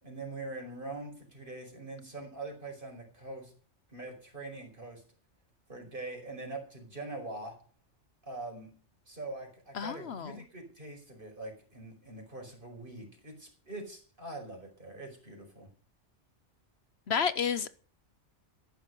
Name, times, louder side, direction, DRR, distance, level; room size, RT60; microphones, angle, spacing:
voice 1, 0.0-3.5 3.9-5.0 5.7-7.5 8.2-8.7 9.1-15.7, right 2 dB, 45° right, 3 dB, 5.6 m, -43 dB
voice 2, 9.7-10.3 17.1-17.8, left 7 dB, 65° left, 15 dB, 1.1 m, -31 dB
14.0 x 11.5 x 5.5 m, 0.42 s
omnidirectional pair, 1.2 m